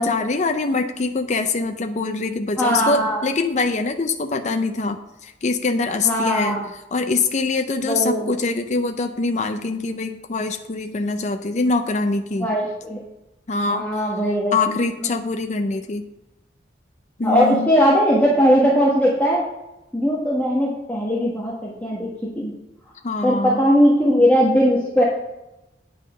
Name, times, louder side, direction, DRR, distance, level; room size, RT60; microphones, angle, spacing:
voice 1, 0.0-6.6 6.9-12.5 13.5-13.9 14.5-16.1 17.2-17.7 23.0-23.7, left 3 dB, 40° left, 6 dB, 0.5 m, -23 dB
voice 2, 2.6-3.2 6.0-6.6 7.9-8.3 12.4-13.0 13.7-14.6 15.0-15.1 17.2-19.4 19.9-22.1 22.3-22.5 23.2-25.0, equal, 10° left, -6 dB, 1.4 m, -19 dB
9.4 x 5.5 x 6.3 m, 0.95 s
head